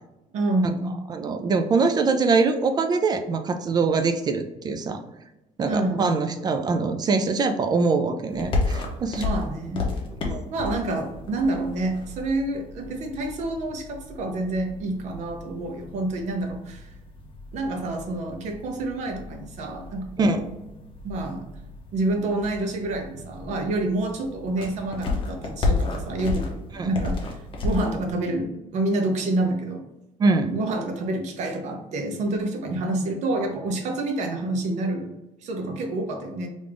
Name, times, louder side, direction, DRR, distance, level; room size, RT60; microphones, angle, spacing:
voice 1, 0.3-1.0 5.6-6.2 9.2-9.9 10.5-16.9 17.5-20.4 21.0-21.5 21.9-29.8 30.5-35.1 35.4-36.5, right 2 dB, 65° right, 4 dB, 0.7 m, -28 dB
voice 2, 1.1-5.0 5.6-9.2 10.2-10.4 20.2-20.4 26.7-26.9 30.2-30.5, right 4 dB, 30° right, 7 dB, 0.3 m, -23 dB
sound 1, 8.3-28.1, left 3 dB, 40° left, 0.8 m, -33 dB
3.3 x 2.6 x 3.3 m, 0.96 s
cardioid pair, 140°, 13 cm